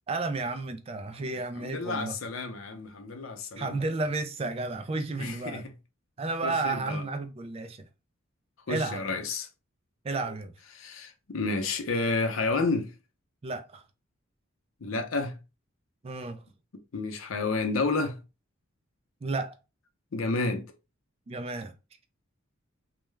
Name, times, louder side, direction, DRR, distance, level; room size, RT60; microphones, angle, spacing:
voice 1, 0.1-2.1 3.6-5.7 6.2-7.9 8.7-9.0 10.0-10.5 13.4-13.8 16.0-16.4 19.2-19.5 21.3-21.7, right 3 dB, 30° right, 0.3 m, -32 dB
voice 2, 1.2-3.8 5.2-5.7 6.4-7.0 8.7-9.5 10.8-12.9 14.8-15.4 16.9-18.2 20.1-20.7, left 3 dB, 85° left, 0.6 m, -30 dB
2.3 x 2.1 x 3.1 m
head